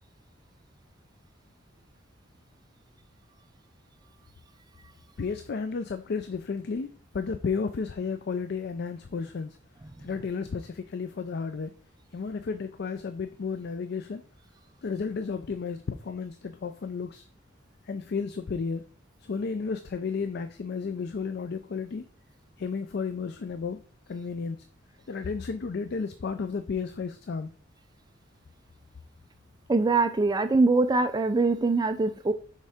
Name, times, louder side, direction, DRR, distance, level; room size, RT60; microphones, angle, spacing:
voice 1, 5.2-9.6 10.0-11.7 12.1-14.2 14.8-17.3 17.9-18.8 19.2-22.0 22.6-23.8 24.1-24.6 25.1-27.5, left 5 dB, 55° left, 9 dB, 0.4 m, -33 dB
voice 2, 29.7-32.3, right 3 dB, 20° right, 10 dB, 0.4 m, -23 dB
6.6 x 4.7 x 3.5 m, 0.43 s
head